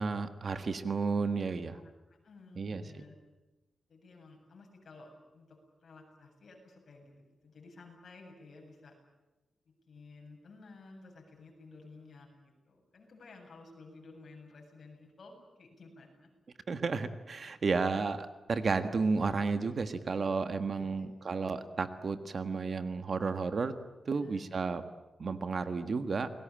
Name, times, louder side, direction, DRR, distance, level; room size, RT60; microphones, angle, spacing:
voice 1, 0.0-1.8 2.6-2.8 16.7-23.7 24.0-24.8 25.2-26.3, right 4 dB, 45° right, 10 dB, 1.5 m, -32 dB
voice 2, 2.2-3.2 3.9-9.0 9.7-16.3 20.8-21.1 24.1-24.6, left 3 dB, 50° left, 1 dB, 8.0 m, -54 dB
29.5 x 20.5 x 8.9 m, 1.1 s
wide cardioid pair, 150°, 0 cm